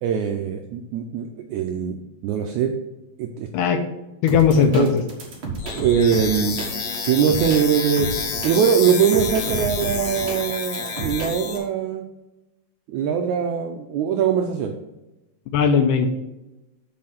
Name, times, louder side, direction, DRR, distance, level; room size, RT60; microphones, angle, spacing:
voice 1, 0.0-2.7 3.2-3.5 4.8-4.9 5.8-6.8 7.1-8.1 8.4-12.0 12.9-14.7, right 7 dB, 80° right, 4 dB, 1.7 m, -22 dB
voice 2, 4.2-5.0 15.5-16.1, left 6 dB, 80° left, 7 dB, 2.0 m, -18 dB
sound 1, 4.3-11.6, right 3 dB, 45° right, 1.9 m, -32 dB
sound 2, 5.6-11.6, left 5 dB, 60° left, 1.9 m, -29 dB
7.6 x 4.4 x 5.7 m, 0.97 s
omnidirectional pair, 4.0 m